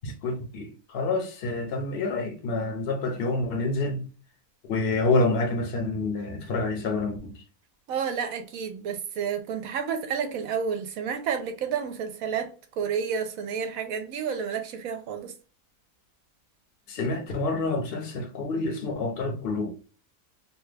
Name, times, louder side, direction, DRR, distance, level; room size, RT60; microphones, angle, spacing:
voice 1, 0.0-4.0 4.7-7.4 16.9-19.8, left 3 dB, 50° left, 0.8 m, -28 dB
voice 2, 7.9-15.3, right 7 dB, 75° right, 1.0 m, -30 dB
2.9 x 2.2 x 3.2 m
omnidirectional pair, 1.6 m